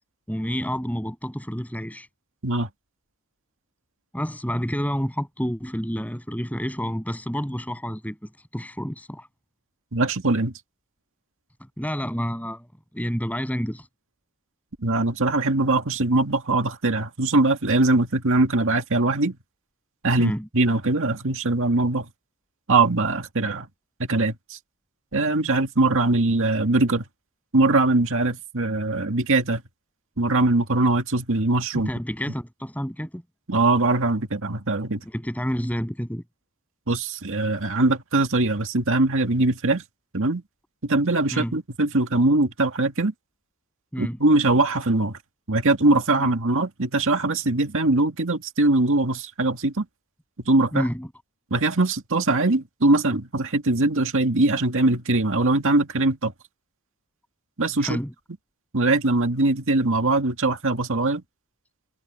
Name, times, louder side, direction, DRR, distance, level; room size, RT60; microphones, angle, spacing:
voice 1, 0.3-2.1 4.1-9.3 11.6-12.7 12.9-13.9 20.2-20.5 31.7-33.2 35.0-36.2 41.3-41.5 43.9-44.2 46.2-46.3 50.7-51.1 57.8-58.1, equal, 5° left, 7.4 m, -29 dB
voice 2, 9.9-10.5 14.8-19.4 20.0-22.1 22.7-23.7 24.1-24.6 25.1-27.0 27.5-29.6 30.2-31.9 33.5-35.0 36.9-39.8 40.1-40.4 40.8-43.1 44.0-45.2 45.5-49.9 50.5-50.9 51.5-56.3 57.6-58.0 58.7-61.2, right 2 dB, 60° right, 2.2 m, -21 dB
head